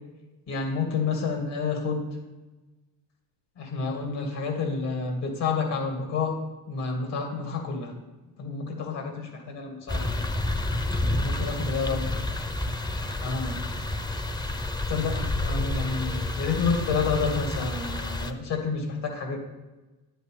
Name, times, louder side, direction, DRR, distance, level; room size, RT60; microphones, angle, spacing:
voice 1, 0.5-2.1 3.6-6.4 6.7-7.9 8.4-10.2 11.2-12.1 13.2-13.7 14.9-19.4, left 4 dB, 75° left, 2 dB, 2.3 m, -29 dB
sound 1, 9.9-18.3, left 2 dB, 10° left, 0.5 m, -29 dB
10.0 x 8.9 x 3.6 m, 1.1 s
cardioid pair, 125°, 42 cm